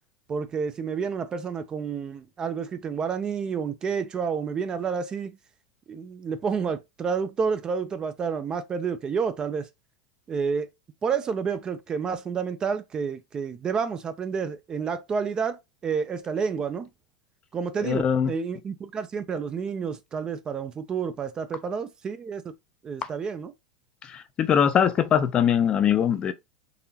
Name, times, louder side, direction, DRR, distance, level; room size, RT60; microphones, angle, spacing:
voice 1, 0.3-5.4 5.9-9.7 10.3-10.7 11.0-16.9 17.5-22.4 22.8-23.5, right 6 dB, 25° right, 0.5 m, -29 dB
voice 2, 17.8-18.3 24.0-26.3, left 8 dB, 30° left, 0.5 m, -22 dB
4.0 x 2.8 x 2.8 m
hypercardioid pair, 105°, 3 cm